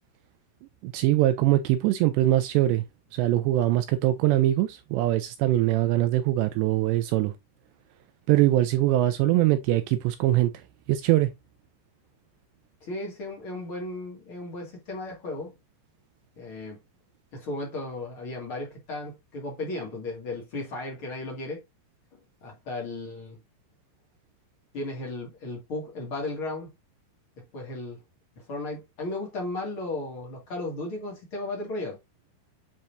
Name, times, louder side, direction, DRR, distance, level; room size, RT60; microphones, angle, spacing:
voice 1, 0.8-2.8 3.1-7.3 8.3-10.5 10.9-11.3, right 14 dB, 85° right, 2.5 m, -22 dB
voice 2, 12.8-15.5 16.4-16.8 17.3-21.6 22.1-23.4 24.7-26.7 27.5-28.0 28.5-32.0, left 2 dB, 45° left, 1.7 m, -35 dB
9.4 x 4.3 x 2.6 m
omnidirectional pair, 5.5 m